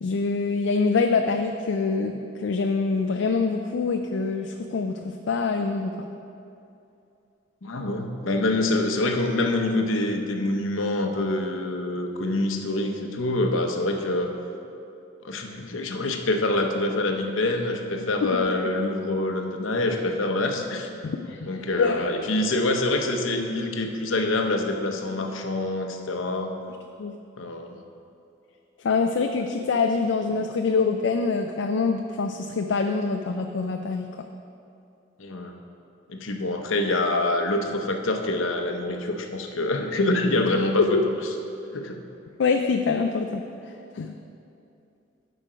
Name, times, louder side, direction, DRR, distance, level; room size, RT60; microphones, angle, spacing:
voice 1, 0.0-6.1 18.0-18.1 18.5-18.6 21.0-21.5 21.8-22.0 27.0-27.1 28.8-34.2 40.9-41.0 42.4-43.4 43.9-44.1, left 4 dB, 65° left, 5 dB, 0.4 m, -25 dB
voice 2, 7.6-14.3 15.2-20.9 21.5-26.5 27.4-27.8 35.2-35.6 36.1-40.8 41.7-42.0, left 2 dB, 85° left, 4 dB, 0.8 m, -26 dB
12.0 x 5.1 x 5.0 m, 2.7 s
head